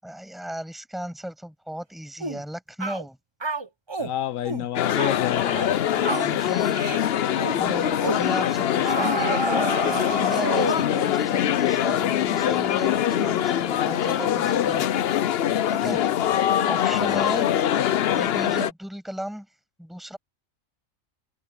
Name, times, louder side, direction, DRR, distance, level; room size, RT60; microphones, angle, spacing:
voice 1, 0.0-3.2 6.0-15.3 15.7-16.1 16.7-17.5 18.1-19.5 19.8-20.2, equal, ahead, 7.4 m, -35 dB
sound 1, 2.2-2.4 2.8-3.0 3.4-4.1 4.5-4.7 5.0-5.2 5.5-5.8 6.0-6.3 6.7-7.0 7.4-7.6 8.0-8.3 8.9-10.9, right 2 dB, 25° right, 0.9 m, -29 dB
voice 2, 4.0-5.9 15.8-16.0 16.9-17.2, left 11 dB, 75° left, 1.1 m, -29 dB
sound 2, 4.8-18.7, left 10 dB, 60° left, 0.7 m, -23 dB
omnidirectional pair, 1.4 m